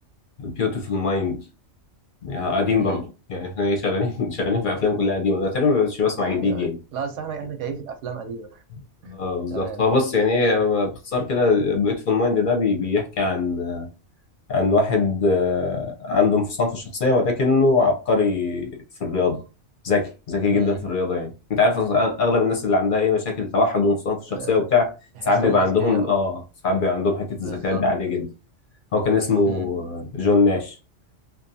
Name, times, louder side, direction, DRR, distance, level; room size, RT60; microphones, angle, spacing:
voice 1, 0.4-1.5 2.2-6.8 9.1-13.9 14.5-19.4 19.8-24.9 25.2-28.3 28.9-30.8, left 3 dB, 50° left, 0.7 m, -22 dB
voice 2, 6.3-8.6 9.0-9.2 9.5-9.8 20.5-20.9 24.3-24.6 25.2-26.2 27.4-28.1 29.4-29.9, right 6 dB, 85° right, 0.9 m, -34 dB
2.6 x 2.3 x 2.6 m
omnidirectional pair, 1.2 m